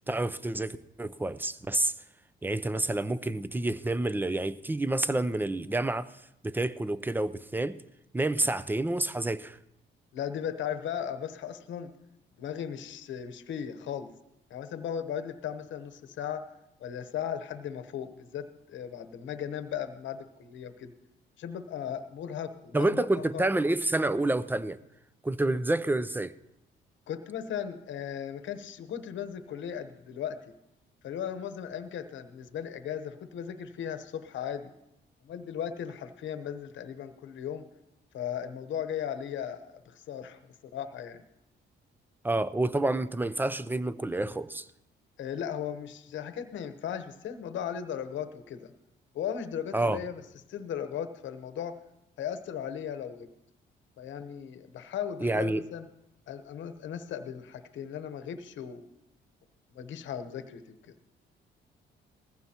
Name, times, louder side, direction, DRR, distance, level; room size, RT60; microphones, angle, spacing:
voice 1, 0.0-1.9 2.4-6.1 6.4-7.8 8.1-9.6 22.7-24.8 25.2-26.3 42.2-44.7 49.7-50.0 55.2-55.6, right 2 dB, 10° right, 0.5 m, -28 dB
voice 2, 10.1-11.9 12.4-14.1 14.5-16.4 16.8-20.9 21.4-23.4 27.1-30.4 31.0-34.7 35.2-37.7 38.1-40.4 40.7-41.2 45.2-48.7 49.1-50.2 50.5-51.7 52.2-53.3 54.0-55.9 56.3-58.8 59.7-61.0, left 9 dB, 70° left, 1.0 m, -37 dB
19.5 x 15.0 x 2.9 m
cardioid pair, 90°, 20 cm